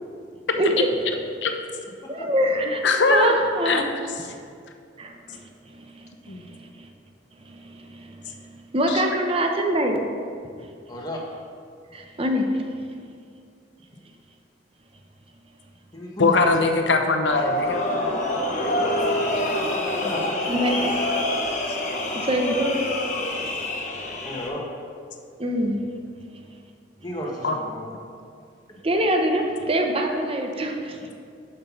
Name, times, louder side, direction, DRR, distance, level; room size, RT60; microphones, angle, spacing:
voice 1, 2.1-3.8 5.0-6.9 7.5-10.0 11.9-12.7 19.4-19.9 20.5-20.9 21.3-21.4 21.9-23.5 25.4-25.8 28.8-31.1, right 1 dB, 30° right, 3 dB, 0.7 m, -25 dB
voice 2, 2.8-3.4 3.6-3.8 4.2-4.3 6.3-6.4 8.9-9.0 16.2-18.0 21.7-21.8 27.4-27.6, left 3 dB, 80° left, 4 dB, 0.7 m, -21 dB
voice 3, 10.9-11.2 15.9-16.5 17.9-18.0 19.9-20.3 24.2-24.7 27.0-27.9, left 1 dB, 20° left, -2 dB, 1.2 m, -33 dB
sound 1, 17.3-24.5, left 1 dB, 40° left, 1.0 m, -26 dB
6.6 x 5.4 x 5.8 m, 2.3 s
head